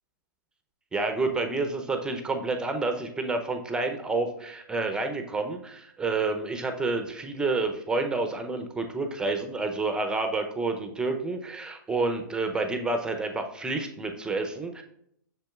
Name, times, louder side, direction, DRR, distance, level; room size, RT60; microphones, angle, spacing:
voice 1, 0.9-14.8, right 3 dB, 10° right, 6 dB, 0.6 m, -29 dB
7.5 x 6.6 x 2.4 m, 0.71 s
hypercardioid pair, 130°, 11 cm